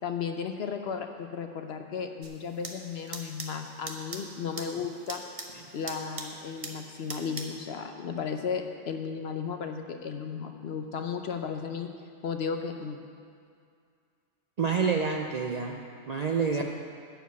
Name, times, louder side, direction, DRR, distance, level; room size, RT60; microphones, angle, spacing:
voice 1, 0.0-5.2 5.7-11.9 12.2-13.0, left 6 dB, 60° left, 5 dB, 0.9 m, -34 dB
sound 1, 2.2-7.6, right 2 dB, 30° right, 0.8 m, -43 dB
voice 2, 14.6-15.8 16.1-16.6, right 5 dB, 50° right, 1 dB, 0.5 m, -27 dB
11.5 x 4.8 x 8.3 m, 2.3 s
omnidirectional pair, 1.3 m